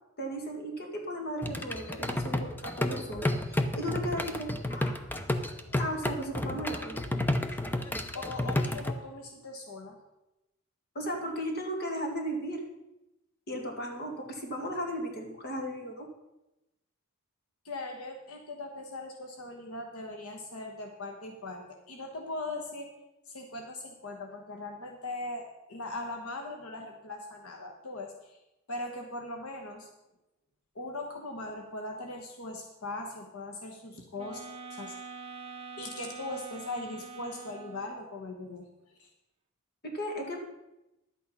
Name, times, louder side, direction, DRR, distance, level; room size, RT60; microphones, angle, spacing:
voice 1, 0.2-4.9 5.8-7.0 10.9-12.6 13.5-16.1 39.8-40.4, equal, 50° left, 2 dB, 2.2 m, -36 dB
sound 1, 1.4-8.9, left 1 dB, 10° left, 0.6 m, -31 dB
voice 2, 8.1-10.0 17.6-22.9 23.3-28.4 28.7-29.9 30.7-34.4 34.7-34.9 35.8-38.7 39.0-39.1, left 2 dB, 80° left, 3 dB, 1.3 m, -40 dB
sound 2, 34.2-38.1, right 5 dB, 25° right, 1.1 m, -45 dB
11.5 x 8.6 x 5.4 m, 0.94 s
head